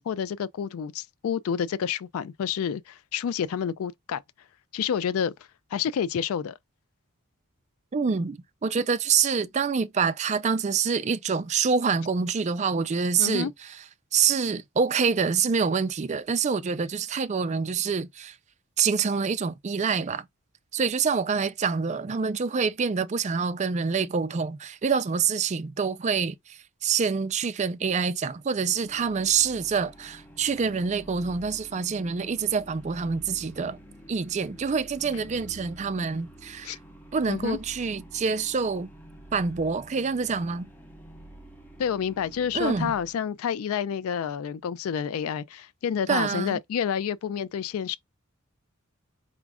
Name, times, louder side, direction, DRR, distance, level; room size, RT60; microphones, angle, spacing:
voice 1, 0.0-4.2 4.7-5.3 5.7-6.6 13.2-13.5 36.6-36.8 37.3-37.6 41.8-48.0, left 8 dB, 70° left, 0.3 m, -29 dB
voice 2, 7.9-13.5 14.1-18.3 18.8-20.3 20.7-33.8 34.1-36.8 37.1-38.9 39.3-40.7 42.5-42.9 46.1-46.6, right 5 dB, 30° right, 0.3 m, -26 dB
sound 1, 28.4-43.2, right 1 dB, 10° left, 0.7 m, -48 dB
4.9 x 2.4 x 3.5 m
head